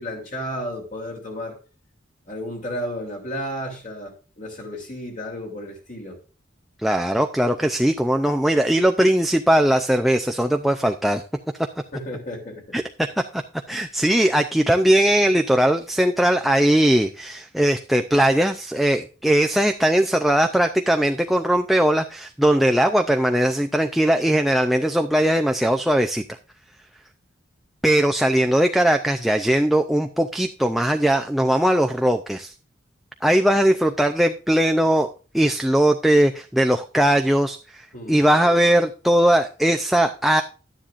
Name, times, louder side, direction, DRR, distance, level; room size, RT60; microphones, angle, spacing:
voice 1, 0.0-1.6 2.3-6.2 11.9-12.8 37.9-38.2, equal, 45° left, 3.1 m, -33 dB
voice 2, 6.8-11.2 12.7-12.8 13.3-13.4 13.7-26.4 27.8-32.5 33.2-40.4, right 1 dB, ahead, 0.4 m, -19 dB
12.0 x 10.0 x 2.5 m
head